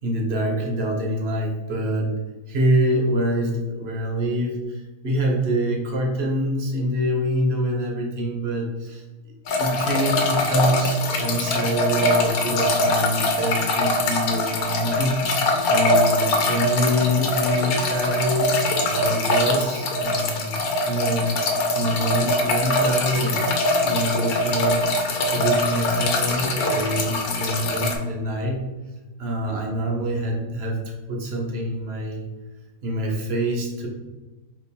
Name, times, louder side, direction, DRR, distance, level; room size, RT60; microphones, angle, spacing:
voice 1, 0.0-2.2 2.5-9.0 9.6-18.5 18.8-21.4 21.7-23.4 23.8-28.6 29.2-32.3 32.8-33.9, equal, 50° right, -1 dB, 1.0 m, -25 dB
sound 1, 9.5-28.0, left 1 dB, 70° left, 1.2 m, -23 dB
4.5 x 2.6 x 4.1 m, 1.2 s
omnidirectional pair, 1.6 m